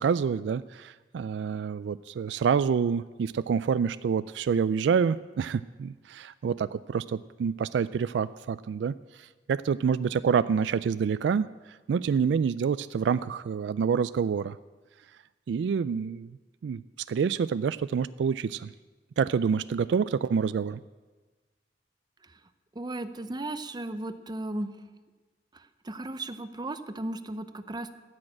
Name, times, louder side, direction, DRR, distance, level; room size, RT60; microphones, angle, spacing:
voice 1, 0.0-11.5 11.9-14.6 15.5-16.4 16.6-16.8 17.1-18.7 19.2-20.8, right 6 dB, 70° right, 15 dB, 0.3 m, -27 dB
voice 2, 22.8-24.7 25.8-28.0, right 2 dB, 25° right, 11 dB, 0.6 m, -35 dB
15.0 x 6.5 x 8.7 m, 1.3 s
head